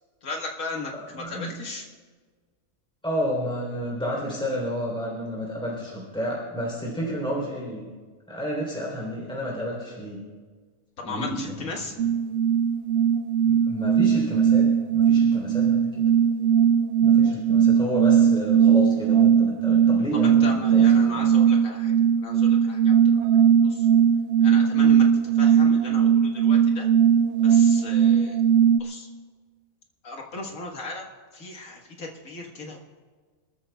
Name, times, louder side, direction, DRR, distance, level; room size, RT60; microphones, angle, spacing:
voice 1, 0.2-1.9 11.0-11.9 20.2-21.9 22.2-23.2 23.6-23.9 24.4-25.1 25.3-26.9 27.4-28.4 28.8-29.1 30.0-31.1 31.3-32.8, left 3 dB, 75° left, 1 dB, 2.0 m, -36 dB
voice 2, 0.9-1.5 3.0-7.9 8.3-10.2 11.1-11.5 13.5-14.7 14.9-16.0 17.0-20.4 20.7-20.9, equal, 5° left, -4 dB, 3.4 m, -30 dB
sound 1, 12.0-28.8, right 8 dB, 65° right, 0.8 m, -19 dB
26.5 x 13.5 x 2.3 m, 1.5 s
omnidirectional pair, 1.4 m